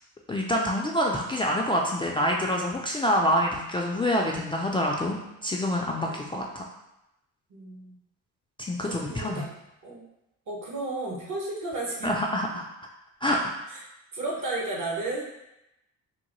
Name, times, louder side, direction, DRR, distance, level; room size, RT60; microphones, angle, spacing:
voice 1, 0.3-6.6 8.7-9.4 12.0-12.6 13.2-13.4, equal, 15° left, -2 dB, 0.3 m, -26 dB
voice 2, 6.0-6.4 7.5-7.9 8.8-9.5 9.8-10.0 10.5-12.1 13.7-13.8 14.1-15.2, right 2 dB, 55° right, -2 dB, 1.1 m, -33 dB
3.7 x 2.1 x 3.0 m, 0.88 s
supercardioid pair, 70°, 37 cm